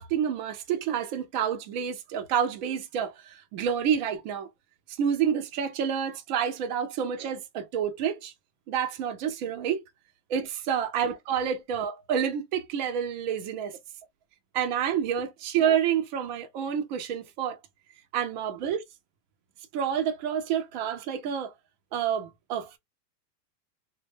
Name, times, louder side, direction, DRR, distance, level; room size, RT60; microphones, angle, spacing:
voice 1, 0.0-4.5 4.9-8.3 8.7-9.8 10.3-13.7 14.5-17.6 18.1-18.8 19.7-21.5 21.9-22.8, right 8 dB, 30° right, 0.4 m, -28 dB
3.0 x 2.1 x 3.4 m
hypercardioid pair, 130°, 49 cm